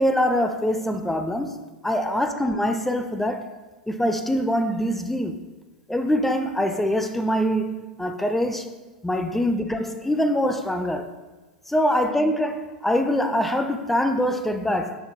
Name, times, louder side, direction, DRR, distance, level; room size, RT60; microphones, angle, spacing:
voice 1, 0.0-3.5 3.9-5.5 5.9-8.7 9.0-11.2 11.7-15.0, equal, 5° left, 0.5 m, -24 dB
11.0 x 3.9 x 2.2 m
hypercardioid pair, 100°, 4 cm